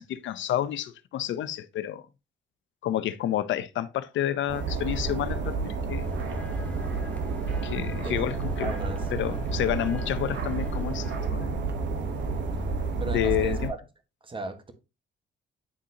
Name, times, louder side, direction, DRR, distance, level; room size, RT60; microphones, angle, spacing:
voice 1, 0.0-2.0 2.8-6.1 7.6-8.8 9.1-11.6 13.1-13.7, left 11 dB, 70° left, 0.6 m, -30 dB
sound 1, 4.5-13.7, right 4 dB, 65° right, 1.1 m, -30 dB
sound 2, 6.0-11.3, left 1 dB, 5° left, 1.1 m, -46 dB
voice 2, 8.6-9.1 13.0-13.8 14.2-14.7, right 3 dB, 25° right, 1.2 m, -36 dB
9.9 x 3.8 x 2.8 m
cardioid pair, 90°, 20 cm